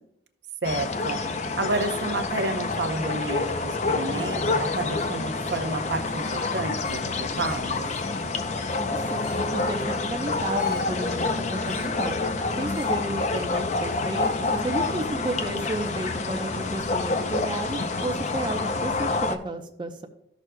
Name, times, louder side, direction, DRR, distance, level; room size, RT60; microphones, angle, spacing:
sound 1, 0.6-19.4, left 3 dB, 40° left, 0.5 m, -28 dB
voice 1, 0.6-1.2 1.6-7.9, right 2 dB, 75° right, 7 dB, 0.7 m, -30 dB
sound 2, 6.1-6.5 6.8-7.1 7.4-8.1 9.0-9.5 10.6-11.0 11.6-12.0 12.7-13.0 14.2-14.4, left 4 dB, 70° left, 1.9 m, -45 dB
voice 2, 8.8-12.2 12.6-20.1, right 1 dB, 25° right, 3 dB, 0.6 m, -32 dB
Zipper (clothing), 10.5-12.0 12.8-14.1 14.9-16.0 16.6-17.0, right 1 dB, 10° right, 2.4 m, -49 dB
14.5 x 6.2 x 2.2 m, 0.77 s
head